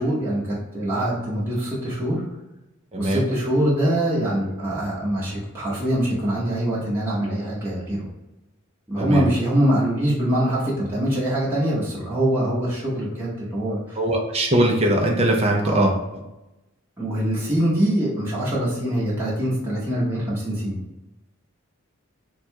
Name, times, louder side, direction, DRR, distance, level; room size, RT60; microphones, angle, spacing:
voice 1, 0.0-2.2 2.9-8.1 8.9-14.0 15.6-15.9 17.0-20.8, right 1 dB, 10° right, -8 dB, 0.9 m, -23 dB
voice 2, 2.9-3.3 9.0-9.2 13.9-16.2, right 1 dB, 30° right, 0 dB, 0.5 m, -21 dB
3.7 x 2.3 x 4.4 m, 0.97 s
head